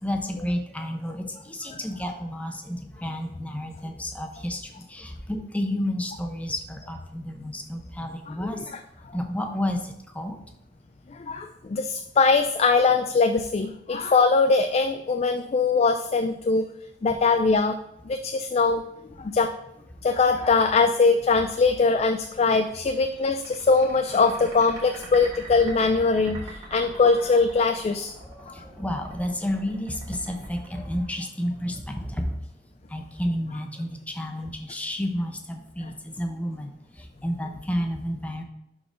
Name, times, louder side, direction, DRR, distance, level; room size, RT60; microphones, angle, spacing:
voice 1, 0.0-8.7 9.1-10.4 28.2-32.4 32.9-36.7 37.0-38.4, left 1 dB, 10° left, 4 dB, 0.8 m, -31 dB
voice 2, 11.1-16.7 17.0-17.8 18.1-18.8 19.2-19.5 20.0-28.1 28.5-28.6, left 4 dB, 35° left, 7 dB, 0.4 m, -22 dB
sound 1, 23.0-31.6, right 2 dB, 25° right, 2.4 m, -44 dB
11.5 x 3.9 x 3.8 m, 0.83 s
head